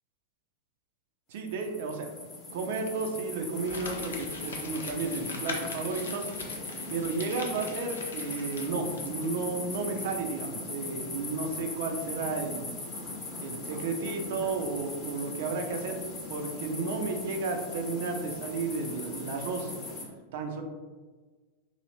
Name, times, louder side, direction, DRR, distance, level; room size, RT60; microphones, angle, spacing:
voice 1, 1.3-2.1 2.5-6.3 6.9-12.8 13.4-16.0 16.3-19.7 20.3-20.6, right 4 dB, 55° right, 4 dB, 0.4 m, -33 dB
sound 1, 1.4-20.0, left 2 dB, 30° left, 0.9 m, -39 dB
Crumpling crinkling, 3.6-9.4 9.7-9.8, left 3 dB, 70° left, 0.4 m, -42 dB
2.7 x 2.7 x 3.0 m, 1.3 s
figure-of-eight pair, 90°, 0 cm